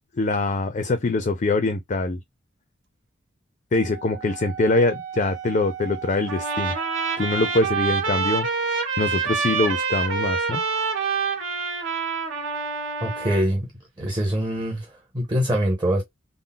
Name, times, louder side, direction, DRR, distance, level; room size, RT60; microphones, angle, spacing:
voice 1, 0.1-2.2 3.7-6.8 7.2-8.5 9.0-10.6, left 2 dB, 35° left, 0.4 m, -23 dB
Wind instrument woodwind instrument, 3.7-7.9, right 9 dB, 60° right, 0.8 m, -38 dB
Trumpet, 6.3-13.4, right 5 dB, 80° right, 1.5 m, -26 dB
voice 2, 13.0-13.7 14.0-16.0, equal, 20° right, 0.7 m, -24 dB
3.8 x 2.0 x 2.2 m
head